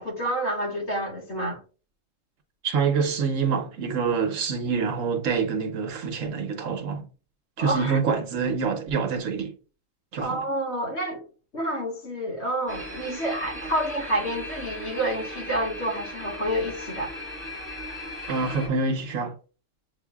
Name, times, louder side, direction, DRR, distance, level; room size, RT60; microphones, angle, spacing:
voice 1, 0.0-1.6 7.6-8.0 10.2-11.2 11.5-17.1, right 1 dB, 55° left, 1.7 m, -29 dB
voice 2, 2.6-7.0 7.6-9.5 10.1-10.4 18.3-19.3, right 5 dB, 70° right, 1.1 m, -26 dB
sound 1, 12.7-18.7, equal, 10° right, 1.3 m, -37 dB
7.5 x 2.6 x 2.3 m
omnidirectional pair, 1.4 m